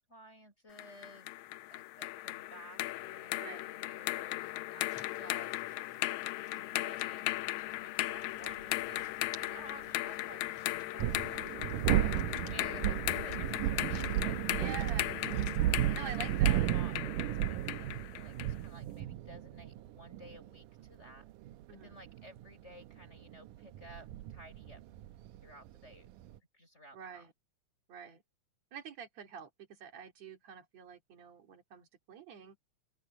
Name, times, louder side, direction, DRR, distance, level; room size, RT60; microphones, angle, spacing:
voice 1, 0.0-1.4 1.7-5.6 5.9-7.6 7.8-14.4 15.9-21.3 21.8-24.8 25.4-26.1 26.5-27.2, equal, 20° left, 6.9 m, -55 dB
sound 1, 0.8-18.6, left 18 dB, 80° left, 1.8 m, -37 dB
sound 2, 4.8-16.6, left 6 dB, 55° left, 3.2 m, -58 dB
voice 2, 6.5-6.9 12.7-12.9 14.6-16.7 21.7-22.0 26.9-27.3 27.9-28.2 28.7-32.6, right 7 dB, 55° right, 3.7 m, -48 dB
sound 3, 8.6-8.7 10.8-26.4, right 13 dB, 85° right, 2.3 m, -34 dB
open air
omnidirectional pair, 3.7 m